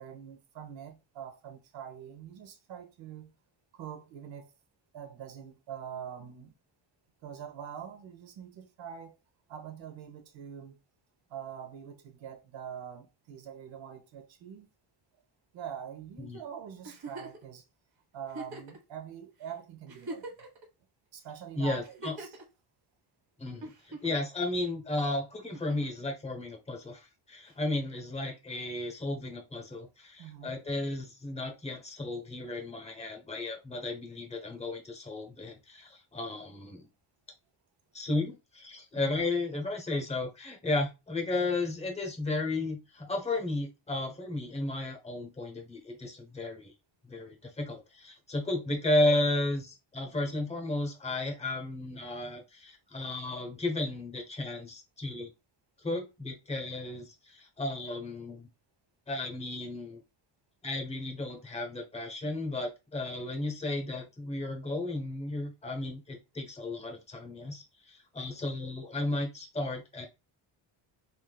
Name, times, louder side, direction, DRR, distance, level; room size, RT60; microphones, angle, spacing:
voice 1, 0.0-3.3 3.7-4.5 4.9-6.5 7.2-9.2 9.5-10.8 11.3-14.7 15.5-17.6 18.1-20.3 21.1-22.4 30.2-30.6 39.0-39.3, right 8 dB, 65° right, 0.9 m, -44 dB
Giggle, 16.8-17.4 18.3-18.8 19.4-19.5 19.9-20.6 21.8-22.4 23.6-24.3 25.5-26.0 27.5-27.6, right 2 dB, 50° right, 1.2 m, -42 dB
voice 2, 21.5-22.1 23.4-36.9 37.9-46.7 47.0-55.3 55.8-58.5 59.1-60.0 60.6-70.1, left 2 dB, 15° left, 0.9 m, -34 dB
3.5 x 2.7 x 2.2 m
cardioid pair, 120°, 48 cm